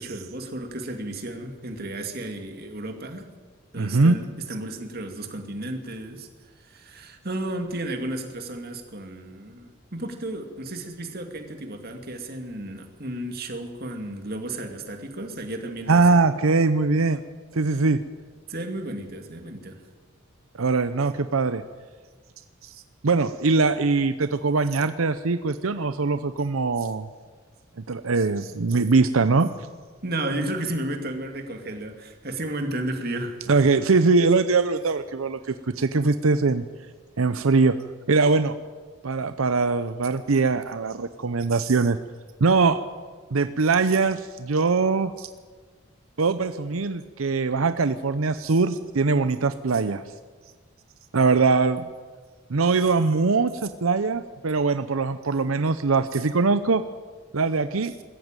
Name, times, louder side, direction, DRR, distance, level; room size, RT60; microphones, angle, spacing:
voice 1, 0.0-3.3 3.7-6.3 6.6-16.2 18.5-19.8 30.0-33.4, right 1 dB, 50° right, 4 dB, 2.4 m, -33 dB
voice 2, 3.8-4.2 15.9-17.2 17.5-18.0 20.6-21.6 22.6-27.1 27.9-29.5 33.5-36.6 37.2-37.8 38.1-38.6 39.0-42.0 42.4-42.8 43.3-45.3 46.2-50.0 51.1-51.8 52.5-56.8 57.3-57.9, right 4 dB, 90° right, 11 dB, 0.7 m, -22 dB
21.0 x 14.5 x 9.1 m, 1.5 s
head